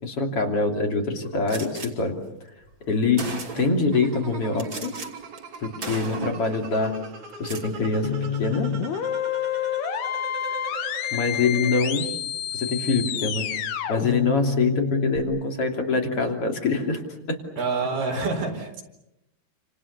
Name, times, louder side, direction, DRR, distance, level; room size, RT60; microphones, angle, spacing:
voice 1, 0.0-2.1 2.9-4.9 5.6-7.0 7.4-8.7 11.1-12.1 12.5-13.6 13.9-17.0 17.3-17.4, left 3 dB, 40° left, 3 dB, 3.6 m, -24 dB
Gunshot gunfire, 1.5-1.9 2.7-2.8 3.2-3.9 4.6-5.1 5.4-5.6 5.8-6.5 7.3-7.7, right 4 dB, 35° right, 3.5 m, -35 dB
sound 1, 3.9-11.9, right 5 dB, 55° right, 3.6 m, -40 dB
sound 2, 8.0-15.2, left 9 dB, 90° left, 3.7 m, -28 dB
voice 2, 17.6-18.8, right 4 dB, 80° right, 1 dB, 6.4 m, -27 dB
30.0 x 27.5 x 6.7 m, 0.88 s
omnidirectional pair, 4.5 m